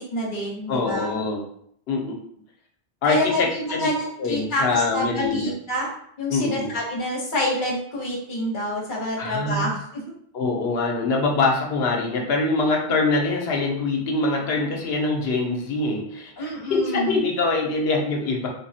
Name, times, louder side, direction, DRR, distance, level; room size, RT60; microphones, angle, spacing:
voice 1, 0.0-1.2 3.1-5.9 6.2-10.0 16.4-17.2, left 1 dB, 55° left, -3 dB, 1.0 m, -27 dB
voice 2, 0.7-1.4 1.9-2.2 3.0-3.9 4.2-5.5 6.3-6.7 9.2-9.7 10.3-18.5, left 3 dB, 85° left, 0 dB, 0.9 m, -24 dB
3.4 x 2.0 x 2.6 m, 0.66 s
omnidirectional pair, 1.0 m